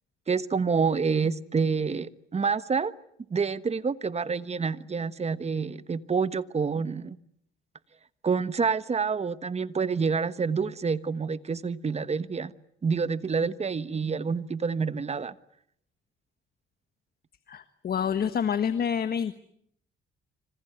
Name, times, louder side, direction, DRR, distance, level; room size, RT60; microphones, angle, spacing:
voice 1, 0.3-2.9 3.3-7.2 8.2-12.5 12.8-15.3, right 5 dB, 35° right, 14 dB, 1.3 m, -28 dB
voice 2, 17.5-19.3, left 7 dB, 50° left, 11 dB, 1.4 m, -27 dB
26.5 x 26.0 x 8.1 m, 0.70 s
cardioid pair, 90°, 20 cm